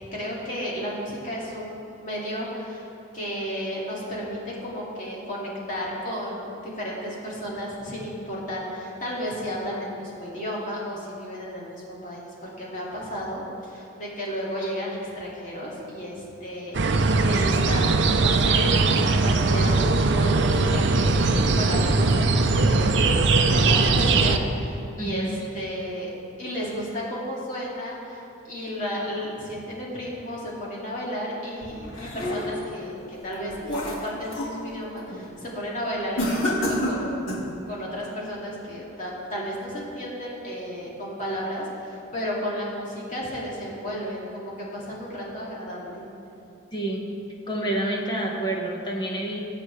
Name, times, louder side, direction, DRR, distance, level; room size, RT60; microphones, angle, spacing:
voice 1, 0.0-2.8 3.1-26.1 26.4-28.2 28.5-37.3 37.7-46.0, equal, 40° left, -5 dB, 2.4 m, -33 dB
sound 1, 16.7-24.4, right 3 dB, 55° right, 0.6 m, -20 dB
voice 2, 25.0-25.3 46.7-47.1 47.5-49.4, right 1 dB, 20° left, -1 dB, 1.3 m, -28 dB
sound 2, 31.6-32.7 33.2-34.6 35.0-35.3 36.2-37.5, left 1 dB, 75° left, 2.1 m, -29 dB
20.5 x 7.5 x 3.4 m, 2.7 s
head